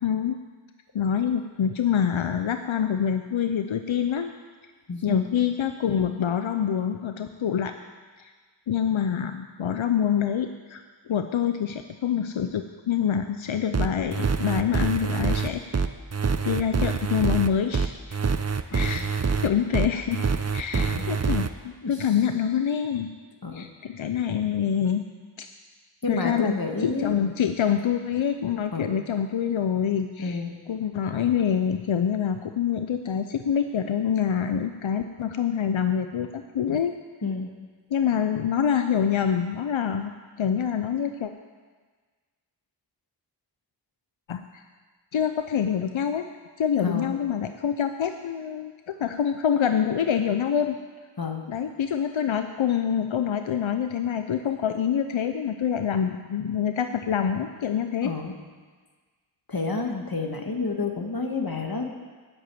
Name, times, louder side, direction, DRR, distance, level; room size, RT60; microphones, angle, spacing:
voice 1, 0.0-0.4 0.9-4.3 5.0-7.7 8.2-8.3 8.7-15.9 16.4-17.9 18.7-19.1 19.4-20.3 20.5-23.1 23.5-25.0 25.4-25.5 26.1-26.5 26.8-30.4 30.7-36.9 37.9-40.1 40.4-41.3 44.3-44.6 45.1-46.3 46.6-50.8 51.5-58.1, left 8 dB, 85° left, 8 dB, 0.6 m, -26 dB
voice 2, 4.9-5.2 18.7-19.1 20.7-21.1 21.8-22.1 23.4-23.7 26.0-27.2 28.7-29.0 30.2-30.5 37.2-37.5 46.8-47.2 51.2-51.5 58.0-58.4 59.5-61.9, left 3 dB, 50° left, 3 dB, 1.7 m, -30 dB
sound 1, 13.7-21.5, right 5 dB, 35° right, 0.6 m, -25 dB
9.5 x 7.9 x 9.0 m, 1.4 s
wide cardioid pair, 40°, 46 cm